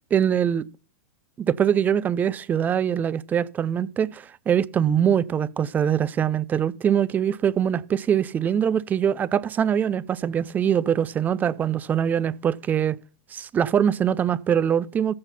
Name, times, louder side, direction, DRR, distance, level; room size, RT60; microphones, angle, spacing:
voice 1, 0.1-0.7 1.4-13.0 13.3-15.1, right 8 dB, 20° right, 0.5 m, -23 dB
14.5 x 5.7 x 5.6 m
hypercardioid pair, 115°, 8 cm